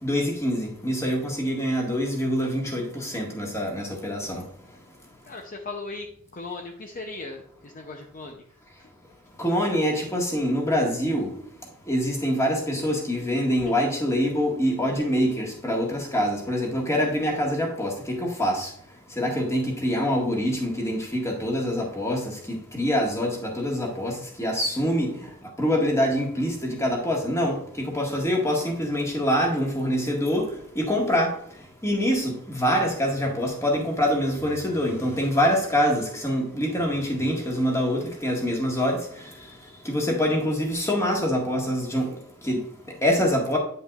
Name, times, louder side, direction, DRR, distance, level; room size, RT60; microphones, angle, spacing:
voice 1, 0.0-4.4 9.4-11.3 11.9-18.7 19.2-22.2 22.5-24.1 24.4-25.1 25.6-30.4 30.7-31.3 31.8-39.0 39.8-42.1 42.4-42.6 43.0-43.6, equal, 15° left, -1 dB, 1.7 m, -25 dB
voice 2, 5.3-6.1 6.3-8.4 8.8-8.9 13.6-13.7, left 3 dB, 40° left, 2 dB, 0.7 m, -37 dB
9.3 x 5.6 x 2.4 m, 0.65 s
head